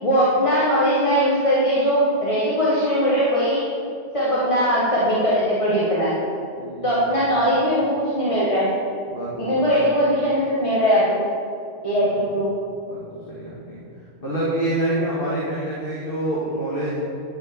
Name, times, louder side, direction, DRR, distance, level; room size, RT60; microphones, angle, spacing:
voice 1, 0.0-3.6 4.1-6.3 6.8-8.7 9.4-11.2 11.8-12.5, equal, 30° left, -8 dB, 1.8 m, -20 dB
voice 2, 6.5-7.2 9.1-9.6 12.0-12.1 12.9-13.0 13.3-13.8 14.2-17.0, right 1 dB, 55° left, -7 dB, 2.2 m, -27 dB
11.5 x 5.7 x 7.1 m, 2.5 s
omnidirectional pair, 1.1 m